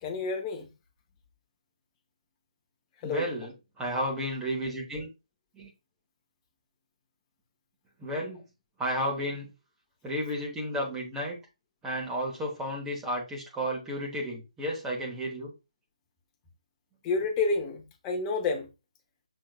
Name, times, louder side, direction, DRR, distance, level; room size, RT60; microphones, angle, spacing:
voice 1, 0.0-0.7 3.0-3.3 17.0-18.7, left 4 dB, 15° left, 0.8 m, -29 dB
voice 2, 3.0-5.1 5.5-5.7 8.0-8.4 8.8-9.5 10.0-11.4 11.8-15.5, equal, 10° right, 1.0 m, -32 dB
6.3 x 3.7 x 2.2 m
figure-of-eight pair, 145°, 4 cm